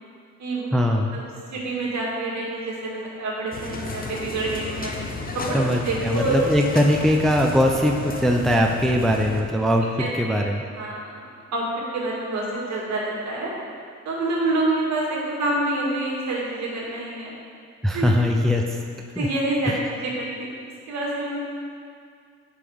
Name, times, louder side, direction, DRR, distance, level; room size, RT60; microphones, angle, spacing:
voice 1, 0.7-1.1 5.5-10.6 17.8-18.8 19.2-19.3, equal, ahead, 1 dB, 0.5 m, -21 dB
voice 2, 1.5-4.9 5.3-5.4 5.8-6.4 10.0-10.1 10.7-11.1 11.5-11.7 11.9-13.5 14.1-17.3 17.9-18.1 19.2-20.5 20.9-21.4, right 2 dB, 65° right, -3 dB, 1.8 m, -27 dB
sound 1, 3.5-9.4, left 3 dB, 30° left, 0.7 m, -33 dB
8.6 x 5.1 x 3.5 m, 2.3 s
cardioid pair, 90°, 30 cm